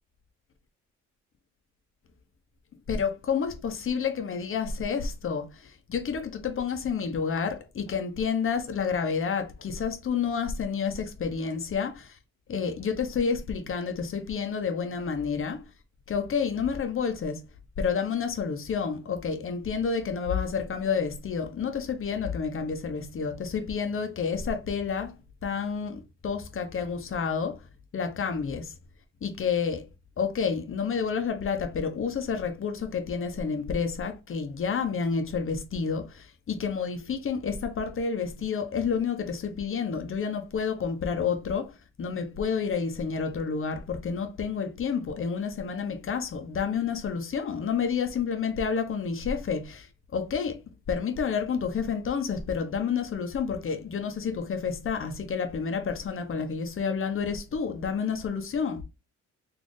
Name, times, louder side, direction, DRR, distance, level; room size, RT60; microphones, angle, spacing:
voice 1, 2.9-12.2 12.5-15.6 16.1-17.4 17.8-25.2 25.4-27.6 27.9-28.7 29.2-29.9 30.2-50.6 50.9-58.8, left 6 dB, 45° left, 1.0 m, -29 dB
4.3 x 2.9 x 3.2 m
cardioid pair, 90°, 30 cm